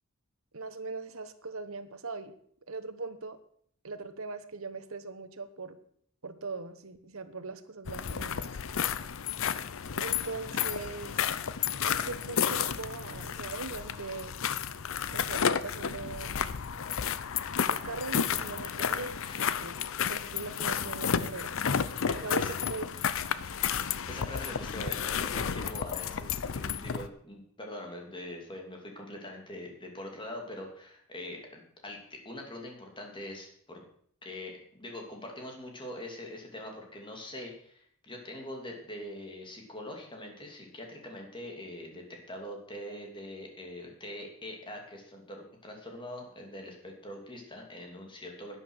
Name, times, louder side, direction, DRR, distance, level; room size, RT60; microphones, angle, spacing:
voice 1, 0.5-2.3 2.7-3.4 3.8-5.8 6.2-8.5 9.9-11.3 11.9-14.6 15.1-16.4 17.7-21.9 22.1-22.9, right 3 dB, 65° right, 11 dB, 1.1 m, -40 dB
sound 1, 7.8-27.1, left 7 dB, 65° left, 0.6 m, -32 dB
voice 2, 18.6-19.5 22.0-22.7 24.1-32.0 32.2-33.8 34.2-48.6, left 1 dB, 25° left, 1 dB, 2.8 m, -43 dB
11.0 x 10.0 x 6.3 m, 0.62 s
head